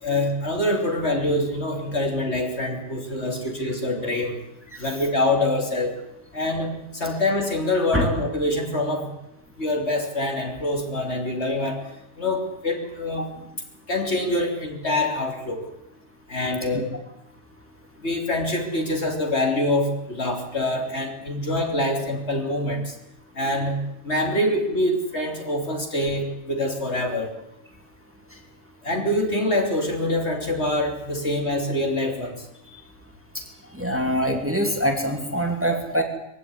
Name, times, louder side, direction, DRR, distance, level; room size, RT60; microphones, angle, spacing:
voice 1, 0.0-4.4 4.8-5.9 6.3-9.1 9.6-11.8 12.2-13.3 13.9-15.6 16.3-16.9 18.0-22.8 23.4-27.3 28.8-32.3, left 1 dB, 55° left, 3 dB, 3.7 m, -25 dB
voice 2, 33.7-36.0, equal, 10° right, 3 dB, 2.9 m, -24 dB
22.5 x 15.5 x 9.7 m, 0.84 s
omnidirectional pair, 1.4 m